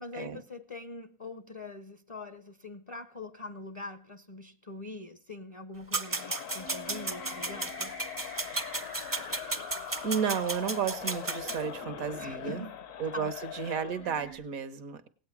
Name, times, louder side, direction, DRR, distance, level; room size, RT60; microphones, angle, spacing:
voice 1, 0.0-8.0 12.2-12.7 13.1-13.3, left 2 dB, 35° left, 0.5 m, -43 dB
sound 1, 5.9-11.6, right 3 dB, 25° right, 0.4 m, -34 dB
Crowd, 6.0-14.1, left 11 dB, 70° left, 1.2 m, -42 dB
sound 2, 6.6-12.6 13.4-13.5 14.0-14.4, right 1 dB, 85° left, 7.7 m, -46 dB
voice 2, 10.0-12.6 13.0-15.1, right 7 dB, 80° right, 1.5 m, -33 dB
18.0 x 8.4 x 5.9 m
omnidirectional pair, 1.4 m